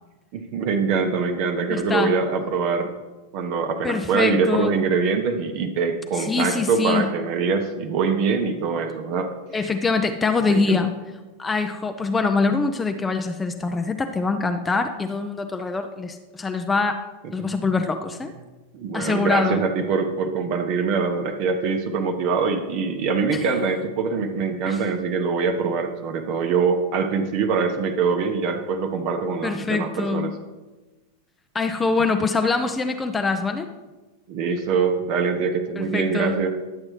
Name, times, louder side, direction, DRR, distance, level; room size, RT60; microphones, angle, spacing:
voice 1, 0.3-2.9 3.3-9.3 9.6-9.7 10.5-10.8 17.4-17.5 18.7-30.3 34.3-36.5, right 5 dB, 45° right, 6 dB, 0.7 m, -24 dB
voice 2, 1.7-2.2 3.8-4.7 6.1-7.1 9.5-10.9 11.4-17.0 17.3-18.3 18.9-19.6 23.3-23.4 24.7-24.8 29.4-30.3 31.5-33.7 35.8-36.4, left 4 dB, 15° left, 6 dB, 0.5 m, -24 dB
10.5 x 7.4 x 3.2 m, 1.2 s
figure-of-eight pair, 90°, 0 cm